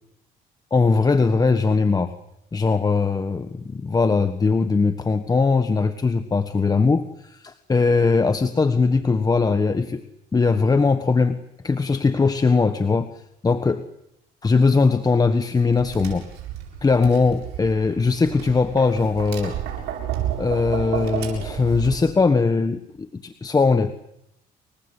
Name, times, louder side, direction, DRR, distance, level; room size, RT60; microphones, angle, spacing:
voice 1, 0.7-2.1 2.5-10.0 10.3-13.1 13.4-13.8 14.4-16.3 16.8-19.6 20.3-23.9, left 4 dB, 20° left, 10 dB, 1.4 m, -20 dB
Tap, 15.7-21.9, right 10 dB, 90° right, 7.7 m, -31 dB
29.5 x 23.0 x 8.1 m, 0.78 s
cardioid pair, 110°, 17 cm